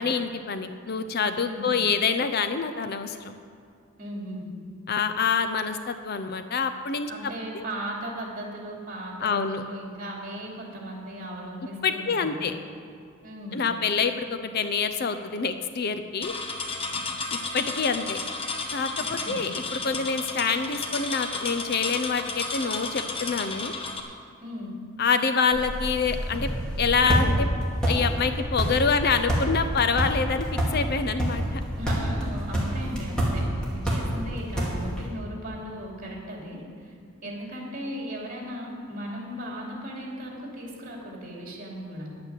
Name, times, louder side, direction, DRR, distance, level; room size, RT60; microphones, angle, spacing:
voice 1, 0.0-3.3 4.9-7.1 7.5-7.6 9.2-9.6 11.8-12.6 13.5-16.3 17.5-18.2 18.7-23.7 25.0-26.5 26.8-27.5 27.9-31.6, left 5 dB, 50° left, 9 dB, 0.6 m, -26 dB
voice 2, 4.0-4.5 7.1-12.4 13.2-13.6 19.3-19.4 24.4-24.7 31.8-36.9 37.2-42.1, equal, 40° right, -2 dB, 3.0 m, -37 dB
sound 1, 16.2-24.0, left 3 dB, 25° left, 1.1 m, -33 dB
sound 2, 25.5-35.1, equal, 5° left, 2.4 m, -28 dB
10.5 x 9.0 x 7.8 m, 2.4 s
head